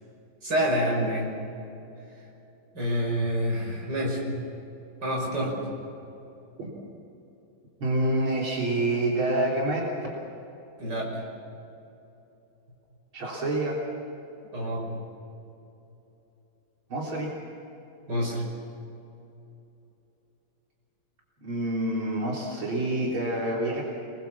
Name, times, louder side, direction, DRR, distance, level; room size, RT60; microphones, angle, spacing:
voice 1, 0.4-1.3 2.7-4.2 5.0-5.5 10.8-11.2 14.5-14.8 18.1-18.4, equal, 55° right, -1 dB, 6.3 m, -27 dB
voice 2, 7.8-9.9 13.1-13.8 16.9-17.3 21.4-23.8, right 1 dB, 85° right, -4 dB, 4.4 m, -27 dB
29.0 x 20.5 x 7.3 m, 2.9 s
omnidirectional pair, 2.2 m